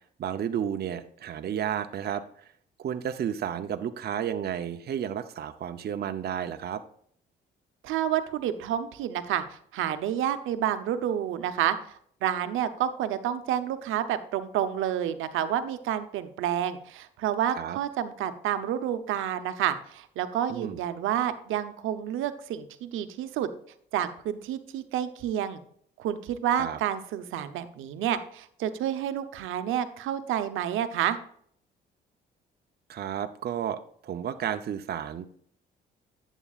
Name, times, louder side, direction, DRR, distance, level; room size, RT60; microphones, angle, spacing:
voice 1, 0.2-2.5 2.8-6.8 17.5-17.8 20.5-20.8 26.6-26.8 32.9-35.3, right 9 dB, 55° right, 8 dB, 0.7 m, -32 dB
voice 2, 7.8-11.8 12.2-23.5 23.9-25.6 26.0-31.2, right 10 dB, 85° right, 10 dB, 0.9 m, -29 dB
11.0 x 8.2 x 2.4 m, 0.62 s
cardioid pair, 90°, 20 cm